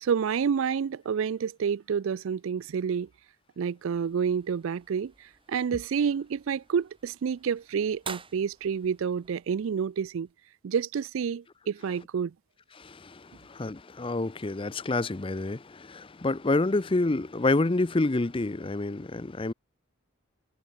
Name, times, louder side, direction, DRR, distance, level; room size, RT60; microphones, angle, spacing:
voice 1, 0.0-3.1 3.6-5.1 5.5-10.3 10.6-12.3, right 7 dB, 65° right, 0.4 m, -29 dB
sound 1, 3.8-10.3, right 5 dB, 25° right, 4.3 m, -49 dB
voice 2, 12.7-19.5, left 2 dB, 25° left, 0.6 m, -28 dB
head